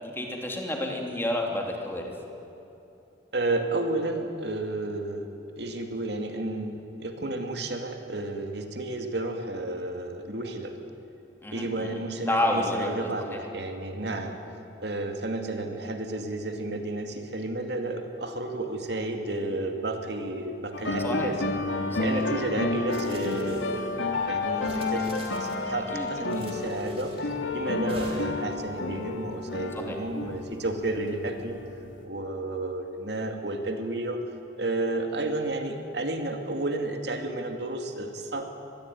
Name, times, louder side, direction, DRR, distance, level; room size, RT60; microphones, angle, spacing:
voice 1, 0.0-2.1 11.4-12.0 12.3-12.9 14.2-14.4 21.0-21.3 21.9-22.2 25.7-26.4 29.7-30.0, left 1 dB, 10° left, 1 dB, 3.1 m, -30 dB
voice 2, 3.3-5.3 5.6-10.8 11.5-14.4 14.8-21.4 21.9-24.0 24.3-25.1 25.4-31.6 32.0-34.2 34.6-38.4, right 2 dB, 60° right, 4 dB, 2.4 m, -32 dB
sound 1, 20.7-32.0, left 3 dB, 85° left, 2.8 m, -31 dB
sound 2, 22.9-23.9 24.6-25.7 26.3-27.3 27.9-28.5, right 2 dB, 30° right, 3.7 m, -45 dB
25.5 x 20.5 x 9.4 m, 2.9 s
head